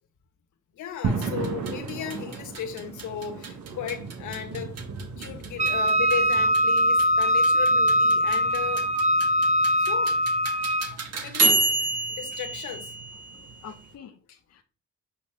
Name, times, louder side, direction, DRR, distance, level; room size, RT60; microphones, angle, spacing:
voice 1, 0.8-4.8 5.2-8.9 9.8-10.2 11.1-11.7 12.1-12.9, left 9 dB, 75° left, 1.7 m, -35 dB
sound 1, 1.0-14.0, right 4 dB, 75° right, 1.5 m, -38 dB
sound 2, 1.1-13.8, right 2 dB, 55° right, 1.7 m, -30 dB
Wind instrument woodwind instrument, 5.6-10.9, equal, 25° right, 0.6 m, -22 dB
voice 2, 13.3-14.6, left 7 dB, 55° left, 0.8 m, -47 dB
8.0 x 5.3 x 3.6 m
cardioid pair, 90°, 30 cm